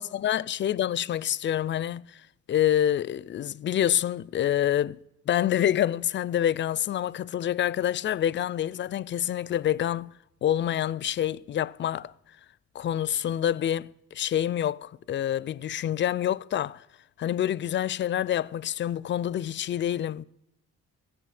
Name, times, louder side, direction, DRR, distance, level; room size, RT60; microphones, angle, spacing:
voice 1, 0.0-2.2 2.5-5.0 5.3-10.1 10.4-12.1 12.7-16.8 17.2-20.2, left 11 dB, 40° left, 0.4 m, -27 dB
16.0 x 7.0 x 8.6 m
cardioid pair, 90°, 30 cm